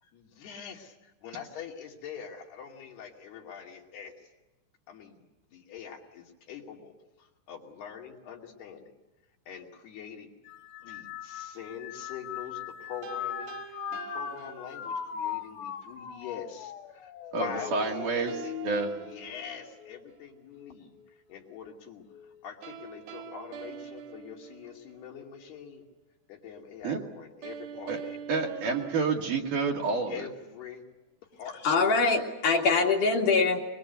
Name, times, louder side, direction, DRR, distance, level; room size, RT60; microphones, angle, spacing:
voice 1, 0.0-4.1 4.9-5.2 5.5-8.9 9.5-10.3 10.8-17.1 17.4-21.0 21.3-25.8 26.3-28.2 30.1-30.8 31.3-31.6, left 7 dB, 70° left, 0 dB, 4.5 m, -44 dB
sound 1, 10.4-20.1 20.5-21.1 22.1-22.4, left 9 dB, 90° left, 3.7 m, -40 dB
sound 2, 13.0-15.2 17.8-20.3 22.6-25.1 27.4-30.2, right 8 dB, 70° right, 2.9 m, -44 dB
voice 2, 17.3-18.3 18.6-18.9 26.8-27.0 27.9-28.0 28.3-30.3, right 4 dB, 55° right, 1 dB, 3.4 m, -29 dB
voice 3, 31.6-33.6, left 4 dB, 55° left, 1 dB, 3.4 m, -23 dB
23.5 x 23.0 x 8.1 m, 1.0 s
omnidirectional pair, 4.8 m